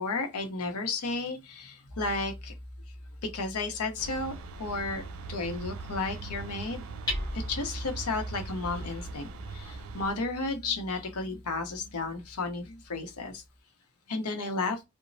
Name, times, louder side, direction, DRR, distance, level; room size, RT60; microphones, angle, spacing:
voice 1, 0.0-2.5 3.3-4.3 4.6-5.0 5.3-6.8 7.5-13.3 14.1-14.8, left 3 dB, 90° left, 0.7 m, -33 dB
Hammer, 1.9-13.6, left 1 dB, 20° left, 0.8 m, -42 dB
sound 1, 4.0-10.1, right 3 dB, 70° right, 0.4 m, -41 dB
2.9 x 2.0 x 2.6 m
head